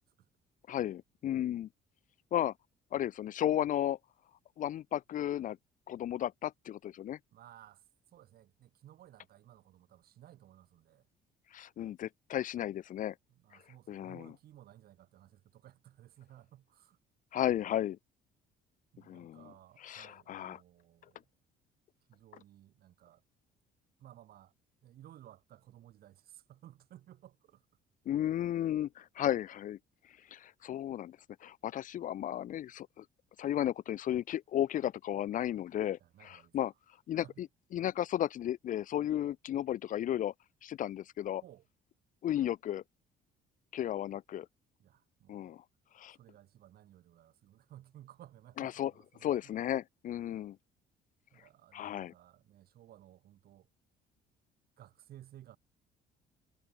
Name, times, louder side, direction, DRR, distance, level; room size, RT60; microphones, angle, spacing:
voice 1, 0.7-1.7 2.3-2.5 2.9-4.0 4.6-5.6 5.9-7.2 11.5-13.1 13.9-14.3 17.3-18.0 19.1-19.5 19.8-20.6 28.1-29.8 30.3-33.0 33.4-36.7 37.1-37.5 37.7-40.3 40.6-41.4 42.2-42.8 43.7-44.5 45.3-45.6 45.9-46.2 48.6-48.9 49.2-50.6 51.7-52.1, left 11 dB, 50° left, 0.6 m, -34 dB
voice 2, 7.3-7.8 8.1-11.1 13.3-17.0 18.9-21.3 22.1-23.2 24.0-24.5 24.8-27.7 36.0-36.6 37.2-37.4 41.4-41.7 44.8-45.6 46.1-49.7 51.3-53.7 54.8-55.6, right 12 dB, 65° right, 6.0 m, -57 dB
cardioid pair, 110°, 17 cm